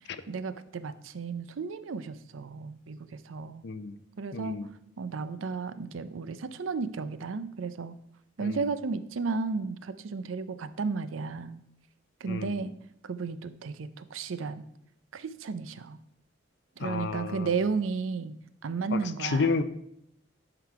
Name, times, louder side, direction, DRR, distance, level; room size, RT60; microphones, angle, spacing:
voice 1, 0.3-3.6 4.2-4.6 5.0-8.0 8.4-11.6 12.2-12.7 13.0-14.6 15.1-16.0 16.8-18.4 18.6-19.6, right 4 dB, 90° right, 14 dB, 0.5 m, -33 dB
voice 2, 3.6-4.0 4.3-4.7 8.4-8.7 12.3-12.6 16.8-17.5 18.9-19.6, left 4 dB, 60° left, 12 dB, 0.5 m, -31 dB
11.5 x 3.9 x 4.6 m, 0.74 s
head